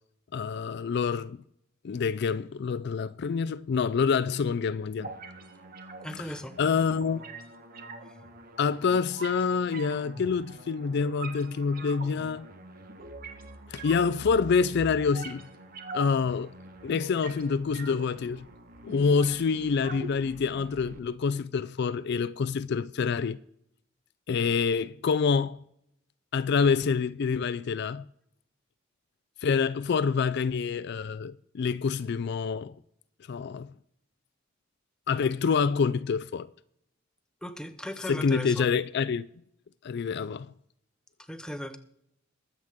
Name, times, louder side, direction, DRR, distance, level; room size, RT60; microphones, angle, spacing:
voice 1, 0.3-1.4 1.8-5.1 6.2-6.3 6.6-7.2 8.6-12.5 13.7-15.5 15.9-16.5 16.8-18.5 18.8-23.4 24.3-25.6 26.3-28.0 29.4-32.7 33.3-33.7 35.1-36.5 38.1-39.3 39.8-40.5, left 5 dB, 55° left, 0.4 m, -27 dB
sound 1, 5.0-21.0, right 2 dB, 45° right, 1.4 m, -44 dB
voice 2, 6.0-6.6 37.4-38.7 41.3-41.8, equal, 5° left, 0.9 m, -37 dB
22.0 x 7.9 x 3.6 m
head